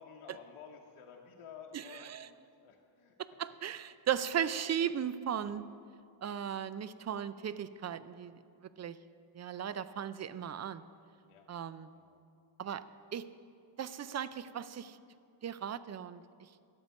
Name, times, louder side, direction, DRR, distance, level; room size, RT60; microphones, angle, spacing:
voice 1, 0.0-3.2 11.2-11.4 11.9-12.2, left 7 dB, 90° left, 0 dB, 0.9 m, -53 dB
voice 2, 1.7-2.3 3.2-5.7 6.2-9.0 9.3-10.8 11.5-11.9 12.6-12.8 13.1-13.3 13.8-15.0 15.4-16.2, right 9 dB, 35° right, 15 dB, 0.4 m, -37 dB
11.5 x 8.0 x 5.3 m, 2.5 s
cardioid pair, 80°, 49 cm